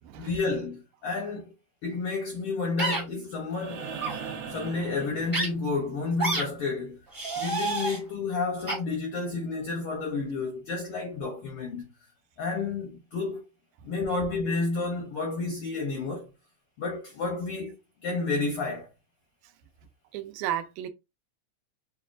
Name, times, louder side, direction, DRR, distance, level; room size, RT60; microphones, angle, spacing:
voice 1, 0.2-1.5 1.8-3.9 4.5-7.0 7.4-11.9 12.4-13.5 13.8-16.3 16.8-18.9, left 3 dB, 75° left, 1.2 m, -31 dB
sound 1, 2.8-3.0 3.9-4.1 5.3-5.5 6.2-6.4 7.1-8.0 8.7-8.8, right 2 dB, 15° right, 0.7 m, -28 dB
sound 2, 3.5-5.8 7.7-7.8, right 6 dB, 65° right, 1.7 m, -39 dB
voice 2, 20.1-20.9, right 11 dB, 90° right, 2.0 m, -33 dB
6.6 x 2.2 x 2.5 m
omnidirectional pair, 3.4 m